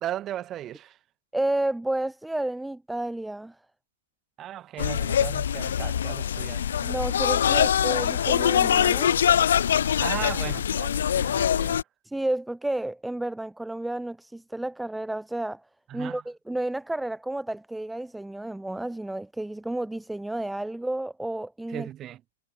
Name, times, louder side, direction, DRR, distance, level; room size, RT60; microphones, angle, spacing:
voice 1, 0.0-1.0 4.4-6.7 10.0-11.9 15.9-16.2 21.7-22.2, right 12 dB, 20° right, 3.9 m, -36 dB
voice 2, 1.3-3.6 6.8-9.2 12.0-15.6 15.9-21.9, right 1 dB, 5° right, 0.4 m, -31 dB
sound 1, 4.8-11.8, left 9 dB, 70° left, 0.9 m, -23 dB
hypercardioid pair, 155°, 0 cm